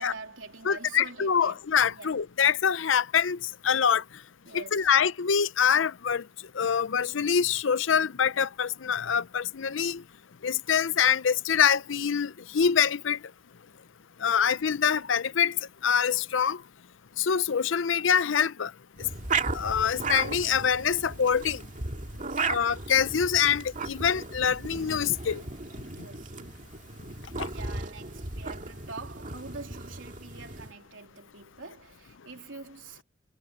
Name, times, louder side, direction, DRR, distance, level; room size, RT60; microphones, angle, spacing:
voice 1, 0.0-2.2 4.5-4.9 22.2-22.5 25.9-26.4 27.5-33.0, right 4 dB, 75° right, 3.6 m, -45 dB
voice 2, 0.6-3.4 3.6-4.0 4.5-6.2 6.6-10.0 10.4-13.2 14.2-15.6 15.8-16.6 17.2-18.7 19.5-21.6 22.5-25.4 27.4-27.5, left 7 dB, 75° left, 0.6 m, -25 dB
sound 1, 19.0-30.7, right 4 dB, 40° right, 2.2 m, -35 dB
head